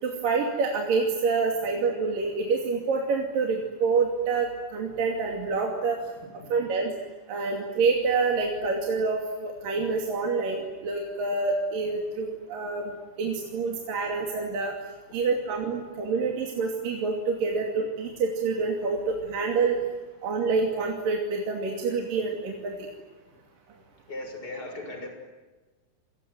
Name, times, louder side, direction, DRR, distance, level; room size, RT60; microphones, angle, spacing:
voice 1, 0.0-6.0 6.5-6.9 7.3-12.9 13.2-14.7 15.1-19.8 20.2-22.9, right 4 dB, 50° right, 1 dB, 3.8 m, -27 dB
voice 2, 6.2-6.5 15.1-15.2 23.3-23.4 24.1-25.1, left 2 dB, 20° left, 5 dB, 6.0 m, -39 dB
28.0 x 22.0 x 9.3 m, 1.3 s
omnidirectional pair, 5.8 m